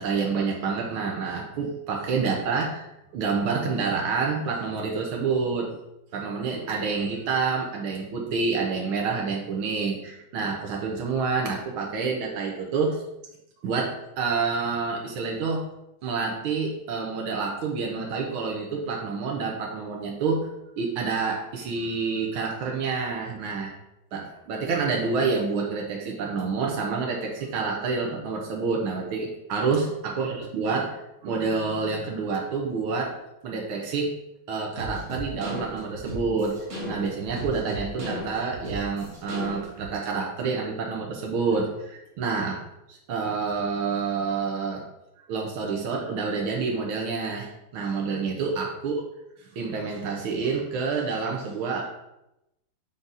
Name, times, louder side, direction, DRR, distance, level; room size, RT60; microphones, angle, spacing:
voice 1, 0.0-2.8 3.1-5.8 6.1-13.0 13.6-15.7 16.0-20.5 20.8-23.7 24.1-33.2 33.4-34.1 34.5-36.6 36.9-42.6 42.9-44.9 45.3-49.0 49.5-51.8, right 4 dB, 90° right, 0 dB, 1.7 m, -28 dB
sound 1, 34.8-39.9, equal, 40° right, 1.9 m, -35 dB
7.6 x 4.0 x 3.9 m, 0.89 s
omnidirectional pair, 2.2 m